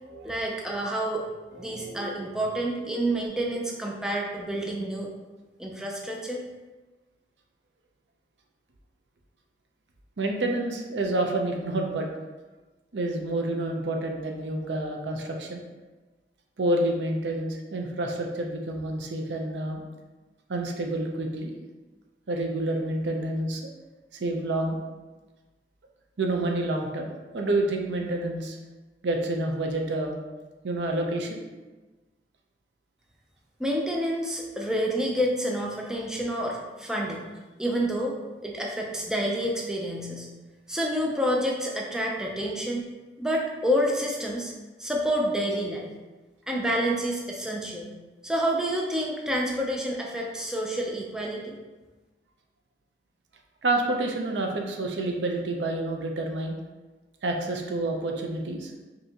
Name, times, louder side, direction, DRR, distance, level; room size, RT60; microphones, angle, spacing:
voice 1, 0.2-1.2 1.6-5.1 5.6-6.4 33.6-37.3 37.6-38.1 38.4-40.3 40.7-42.9 43.2-44.5 44.8-45.9 46.5-47.9 48.2-51.5, equal, 5° right, -1 dB, 0.4 m, -28 dB
voice 2, 1.5-2.3 3.5-3.6 10.2-12.1 12.9-15.6 16.6-19.8 20.5-21.5 22.3-23.7 24.1-24.8 26.2-28.6 29.0-30.2 30.6-31.4 53.6-56.5 57.2-58.7, right 2 dB, 90° right, 2 dB, 0.6 m, -28 dB
5.4 x 2.7 x 2.8 m, 1.2 s
head